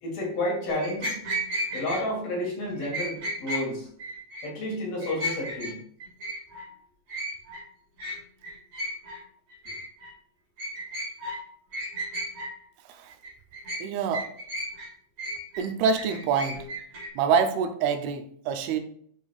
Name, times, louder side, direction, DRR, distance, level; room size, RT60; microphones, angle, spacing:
voice 1, 0.0-1.2 1.7-3.9 4.4-5.8, left 1 dB, 65° left, -4 dB, 4.5 m, -30 dB
sound 1, 0.7-2.0 2.8-3.6 4.0-4.5 4.8-5.7 6.0-6.7 7.1-7.6 8.0-8.2 8.4-9.2 9.5-10.1 10.6-11.4 11.7-12.5 13.1-13.8 14.1-14.9 15.2-17.1, equal, 55° right, 3.7 m, -34 dB
voice 2, 13.8-14.3 15.6-16.7 17.2-18.8, right 6 dB, 85° right, 7 dB, 2.7 m, -26 dB
11.0 x 5.2 x 2.4 m, 0.62 s
omnidirectional pair, 4.5 m